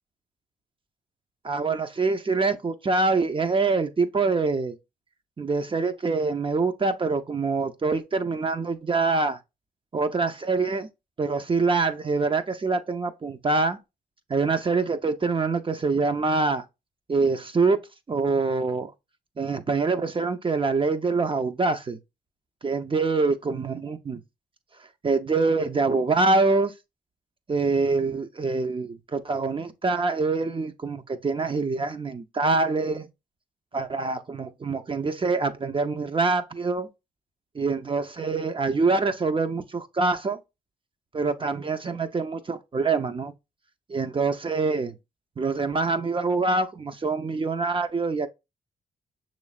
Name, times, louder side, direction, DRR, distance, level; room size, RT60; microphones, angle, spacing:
voice 1, 1.4-4.8 5.4-9.4 9.9-10.9 11.2-13.8 14.3-16.6 17.1-17.8 18.1-18.9 19.4-22.0 22.6-24.2 25.0-26.7 27.5-33.1 33.7-36.9 37.5-40.4 41.1-43.3 43.9-44.9 45.4-48.3, right 3 dB, 30° right, 0.6 m, -25 dB
6.3 x 3.1 x 2.4 m
supercardioid pair, 50°, 16 cm